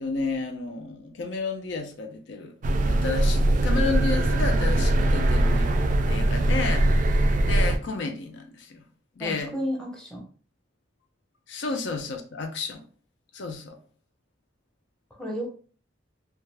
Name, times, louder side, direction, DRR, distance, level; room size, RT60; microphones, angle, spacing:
voice 1, 0.0-2.5 2.9-5.7 6.1-8.8 9.2-9.5 11.5-12.8 13.3-13.8, left 4 dB, 70° left, 0.5 m, -31 dB
sound 1, 2.6-7.8, right 1 dB, 40° right, 0.3 m, -21 dB
voice 2, 9.2-10.2 11.7-11.8 15.1-15.5, equal, 5° left, 0.7 m, -32 dB
2.5 x 2.2 x 3.2 m
head